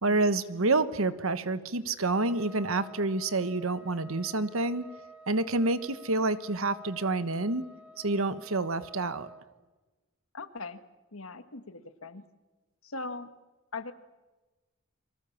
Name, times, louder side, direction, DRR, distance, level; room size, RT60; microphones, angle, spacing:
voice 1, 0.0-4.9 5.3-7.6 8.0-9.3, right 2 dB, 75° right, 12 dB, 1.3 m, -28 dB
Trumpet, 2.1-9.4, right 1 dB, 5° right, 2.3 m, -51 dB
voice 2, 10.3-10.8 11.1-12.2 12.8-13.3 13.7-13.9, left 3 dB, 75° left, 10 dB, 1.7 m, -40 dB
29.5 x 24.0 x 7.2 m, 1.2 s
head